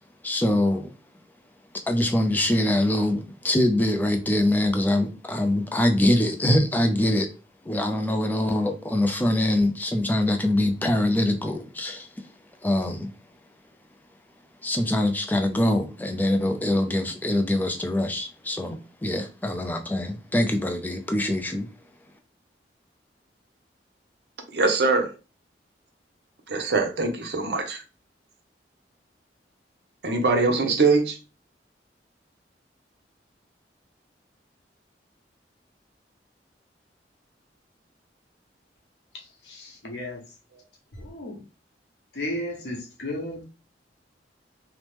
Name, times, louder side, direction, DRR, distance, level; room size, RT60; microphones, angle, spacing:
voice 1, 0.2-0.9 1.9-7.3 7.7-12.1 12.6-13.1 14.6-21.7, left 1 dB, 10° left, 0.3 m, -24 dB
voice 2, 24.5-25.1 26.5-27.8 30.0-31.2, right 3 dB, 70° right, 0.7 m, -22 dB
voice 3, 39.1-40.2 41.0-41.4 42.1-43.4, left 1 dB, 75° left, 0.9 m, -34 dB
2.9 x 2.0 x 3.2 m
head